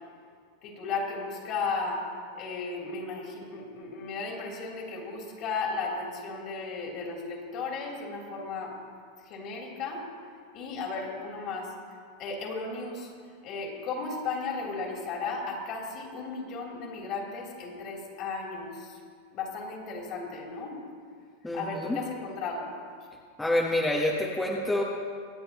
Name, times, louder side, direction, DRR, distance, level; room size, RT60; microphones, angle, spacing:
voice 1, 0.6-2.0 2.3-8.8 9.2-10.1 10.5-11.7 12.2-13.1 13.4-19.0 19.3-20.8 21.5-22.7, left 4 dB, 45° left, -2 dB, 3.6 m, -35 dB
voice 2, 21.4-22.0 23.4-24.8, left 1 dB, 10° left, -3 dB, 1.4 m, -27 dB
25.0 x 8.7 x 3.1 m, 2.1 s
hypercardioid pair, 120°, 0 cm